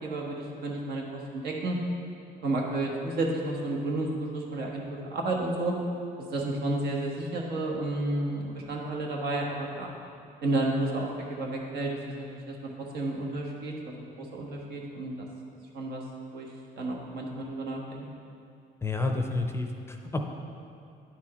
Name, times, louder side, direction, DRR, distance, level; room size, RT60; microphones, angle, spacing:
voice 1, 0.0-1.8 2.4-5.7 6.2-9.9 10.4-12.5 12.9-15.3 15.7-16.0 16.3-16.5 16.8-18.0, right 2 dB, 70° right, -1 dB, 1.3 m, -31 dB
voice 2, 18.8-20.2, left 2 dB, 15° left, 4 dB, 0.5 m, -30 dB
10.5 x 4.6 x 4.3 m, 2.5 s
cardioid pair, 110°, 17 cm